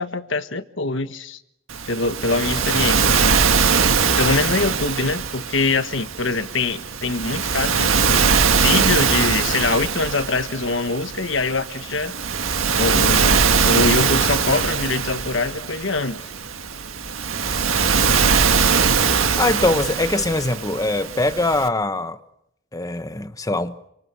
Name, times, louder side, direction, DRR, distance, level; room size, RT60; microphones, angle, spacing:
voice 1, 0.0-1.4 1.9-3.4 4.2-8.2 8.5-12.2 12.8-16.2, left 3 dB, 65° left, 1.4 m, -24 dB
Waves surf, 1.7-21.7, right 5 dB, 85° right, 1.7 m, -21 dB
voice 2, 19.4-22.2 22.7-23.8, left 2 dB, 15° left, 1.1 m, -22 dB
28.0 x 26.5 x 6.1 m
head